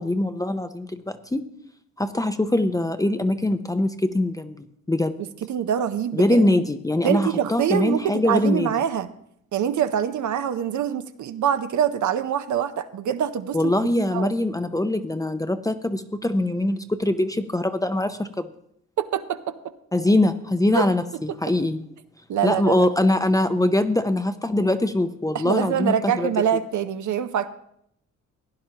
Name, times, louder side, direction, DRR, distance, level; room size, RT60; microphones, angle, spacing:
voice 1, 0.0-1.4 2.0-5.1 6.1-8.7 13.5-18.5 19.9-21.8 22.4-26.3, left 1 dB, 10° left, 9 dB, 0.5 m, -23 dB
voice 2, 5.5-6.5 7.0-9.1 9.5-14.3 19.0-19.6 20.7-20.9 22.3-22.9 25.3-27.5, right 9 dB, 65° right, 10 dB, 0.7 m, -25 dB
16.0 x 10.0 x 2.9 m, 0.74 s
cardioid pair, 90°, 32 cm